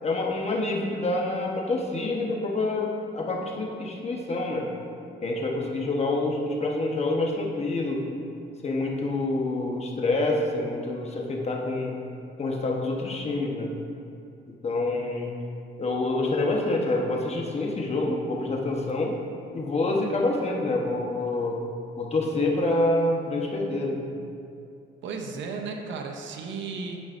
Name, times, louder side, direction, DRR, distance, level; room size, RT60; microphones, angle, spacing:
voice 1, 0.0-2.9 3.1-4.7 5.2-8.0 8.6-11.9 12.4-13.7 14.6-15.3 15.8-19.1 19.5-21.6 22.0-24.0, left 2 dB, 30° left, -1 dB, 1.0 m, -27 dB
voice 2, 25.0-27.0, right 4 dB, 70° right, 2 dB, 0.7 m, -34 dB
9.3 x 5.3 x 2.5 m, 2.6 s
cardioid pair, 90°, 20 cm